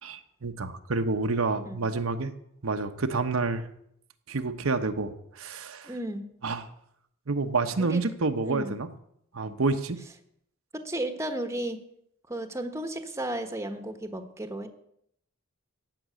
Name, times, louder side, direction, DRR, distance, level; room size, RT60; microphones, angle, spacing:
voice 1, 0.0-2.3 2.6-3.6 4.3-5.9 6.4-6.7 7.3-8.9 9.3-10.0, right 3 dB, 70° right, 7 dB, 1.0 m, -28 dB
voice 2, 5.8-6.3 7.8-8.0 8.4-8.8 10.7-11.8 12.3-14.7, right 1 dB, 15° right, 7 dB, 1.1 m, -34 dB
15.0 x 6.1 x 9.5 m, 0.72 s
head